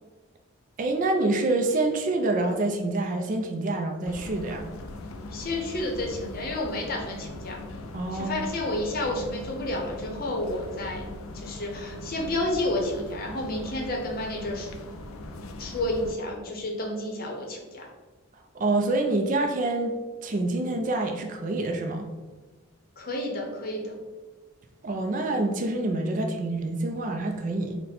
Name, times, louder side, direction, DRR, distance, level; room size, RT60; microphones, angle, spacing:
voice 1, 0.8-4.7 7.9-8.5 18.5-19.9 20.2-22.1 24.8-27.8, right 2 dB, 35° right, 4 dB, 0.4 m, -26 dB
sound 1, 4.1-16.1, left 2 dB, 75° left, 0.4 m, -40 dB
voice 2, 5.3-7.6 8.1-11.1 11.3-14.7 15.6-17.9 23.0-24.0, left 1 dB, 45° left, 0 dB, 0.7 m, -30 dB
4.0 x 2.1 x 4.1 m, 1.2 s
head